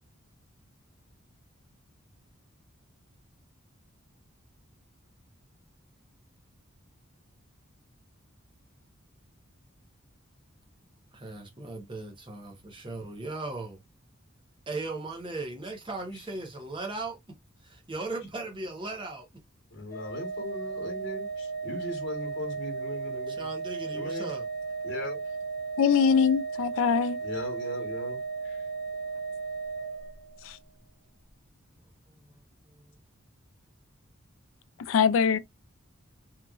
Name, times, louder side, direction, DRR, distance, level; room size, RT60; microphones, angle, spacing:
voice 1, 11.1-13.8 14.7-17.2 17.6-19.3 23.4-24.4 32.1-32.2, right 2 dB, 25° right, 0.8 m, -37 dB
voice 2, 19.7-23.5 23.9-24.3 24.8-25.4 27.2-28.6, left 1 dB, 55° left, 1.2 m, -38 dB
Organ, 19.9-30.6, right 5 dB, 15° left, 0.6 m, -35 dB
voice 3, 25.8-27.2 34.9-35.4, left 6 dB, 70° left, 0.3 m, -22 dB
2.9 x 2.4 x 2.3 m
head